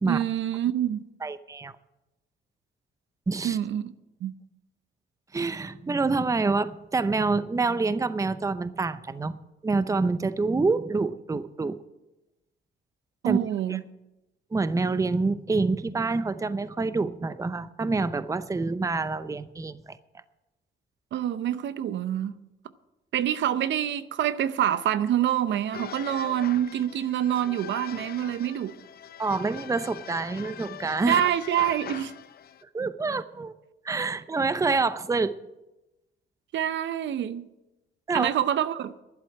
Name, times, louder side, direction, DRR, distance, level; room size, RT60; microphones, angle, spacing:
voice 1, 0.0-1.0 3.4-3.9 4.2-4.3 13.2-13.8 21.1-22.3 23.1-28.8 31.1-32.1 36.5-37.5 38.1-38.9, right 11 dB, 70° right, 0.7 m, -26 dB
voice 2, 1.2-1.7 3.3-3.6 5.3-9.4 9.6-11.8 13.2-13.4 13.7-13.8 14.5-20.0 29.2-31.2 32.7-33.5 33.8-35.4 38.1-38.3, right 3 dB, 15° right, 0.6 m, -27 dB
sound 1, 25.7-32.6, left 9 dB, 50° left, 0.7 m, -42 dB
11.5 x 7.7 x 8.9 m
cardioid pair, 90°, 20 cm